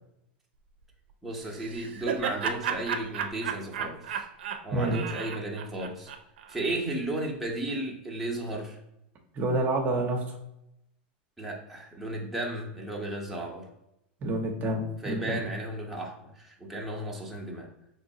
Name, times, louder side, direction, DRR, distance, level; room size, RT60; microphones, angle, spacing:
voice 1, 1.2-4.2 4.6-6.1 6.5-8.8 11.4-13.6 15.0-17.7, right 1 dB, ahead, -3 dB, 0.8 m, -34 dB
Laughter, 1.4-6.6, right 7 dB, 85° right, 0.4 m, -34 dB
voice 2, 9.3-10.4 14.2-15.4, right 2 dB, 35° right, 1 dB, 0.7 m, -28 dB
3.6 x 3.1 x 2.7 m, 0.83 s
supercardioid pair, 125°, 6 cm